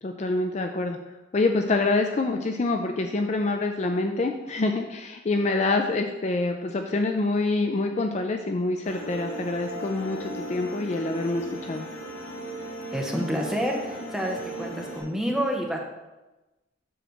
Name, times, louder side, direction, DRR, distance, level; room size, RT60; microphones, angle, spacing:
voice 1, 0.0-1.0 1.3-11.9, left 2 dB, 35° left, 4 dB, 0.4 m, -26 dB
sound 1, 8.8-15.0, right 1 dB, 75° left, 2.2 m, -37 dB
voice 2, 12.9-15.8, equal, ahead, 0 dB, 0.9 m, -28 dB
7.7 x 3.3 x 6.3 m, 1.1 s
head